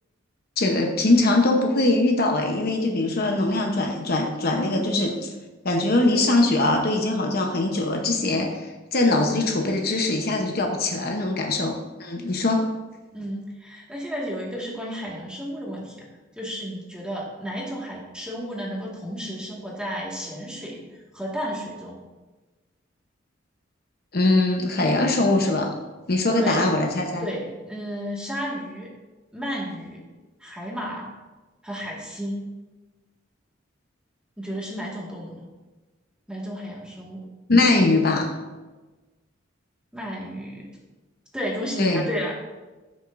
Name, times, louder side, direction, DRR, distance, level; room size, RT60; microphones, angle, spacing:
voice 1, 0.6-5.3 5.6-12.7 24.1-25.7 26.1-27.3 37.5-38.3 41.8-42.1, left 2 dB, 50° left, 2 dB, 0.9 m, -22 dB
voice 2, 13.1-16.1 16.4-20.8 21.1-22.0 26.3-26.6 27.2-28.9 29.3-30.0 30.4-31.2 31.6-32.5 34.4-35.5 36.3-37.3 39.9-40.7 41.3-42.3, equal, 5° right, -3 dB, 1.8 m, -32 dB
14.0 x 6.3 x 2.6 m, 1.2 s
head